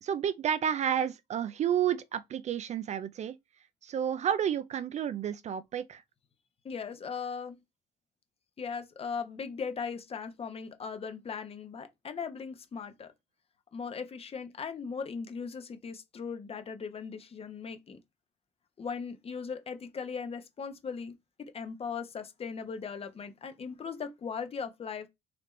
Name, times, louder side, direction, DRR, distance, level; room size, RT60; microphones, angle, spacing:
voice 1, 0.0-3.4 3.8-6.0, right 9 dB, 45° right, 0.4 m, -30 dB
voice 2, 6.6-7.6 8.6-13.1 13.7-18.0 18.8-21.1 21.4-25.1, left 6 dB, 35° left, 1.0 m, -38 dB
4.2 x 3.0 x 4.0 m
cardioid pair, 110°, 17 cm